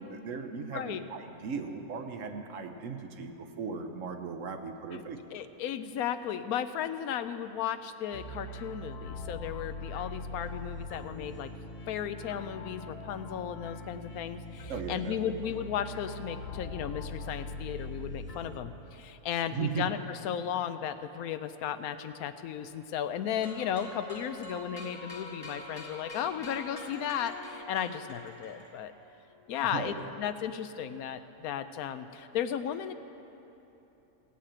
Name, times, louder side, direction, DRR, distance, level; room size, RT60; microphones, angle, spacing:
voice 1, 0.0-5.4 14.7-15.4 19.5-19.9 29.6-30.1, right 5 dB, 65° right, 6 dB, 1.1 m, -37 dB
voice 2, 0.7-1.0 4.9-5.0 5.3-11.5 11.9-28.9 29.5-32.9, left 9 dB, 80° left, 11 dB, 1.0 m, -35 dB
sound 1, 8.1-18.6, left 1 dB, 50° left, 0.9 m, -42 dB
sound 2, 23.4-29.0, left 2 dB, 25° left, 1.2 m, -45 dB
16.5 x 5.7 x 8.6 m, 3.0 s
omnidirectional pair, 1.5 m